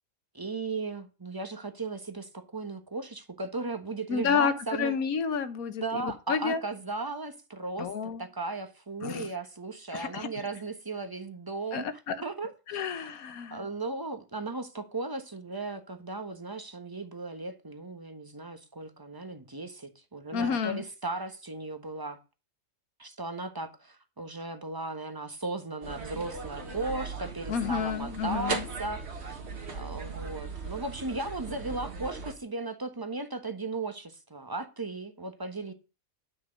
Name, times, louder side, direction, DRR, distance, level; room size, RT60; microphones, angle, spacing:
voice 1, 0.3-5.0 5.8-11.8 12.2-12.8 13.5-22.2 23.0-29.4 29.7-35.7, right 3 dB, 15° right, 1.2 m, -36 dB
voice 2, 4.1-6.6 7.8-8.3 9.0-9.3 9.9-10.3 11.7-12.2 12.7-13.7 20.3-20.8 27.5-28.7, left 6 dB, 85° left, 1.5 m, -30 dB
sound 1, 25.8-32.3, right 4 dB, 50° right, 1.8 m, -38 dB
10.5 x 6.2 x 5.1 m
omnidirectional pair, 1.5 m